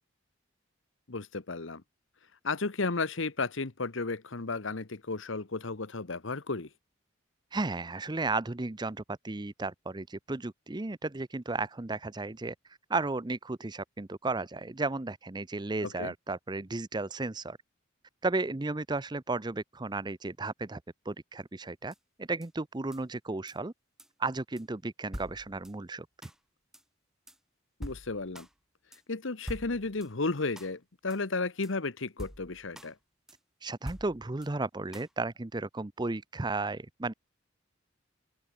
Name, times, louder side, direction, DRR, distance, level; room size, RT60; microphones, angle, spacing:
voice 1, 1.1-1.8 2.4-6.7 15.8-16.1 27.8-28.5 29.1-33.0, left 3 dB, 70° left, 1.2 m, -33 dB
voice 2, 7.5-12.5 12.9-17.6 18.2-20.8 21.0-23.7 24.2-26.1 33.6-37.1, right 3 dB, 20° right, 0.6 m, -34 dB
sound 1, 21.9-22.0 22.4-22.5 22.9-23.0 23.5-23.6 24.0-24.1 24.6-24.7 25.1-25.8 26.2-26.4 26.7-26.8 27.3-27.4 27.8-28.5 28.9-29.0 29.5-30.1 30.6-30.7 31.1-31.2 31.6-31.7 32.2-32.9 33.3-33.4 33.8-34.5 34.9-35.1, equal, 5° right, 2.0 m, -44 dB
open air
head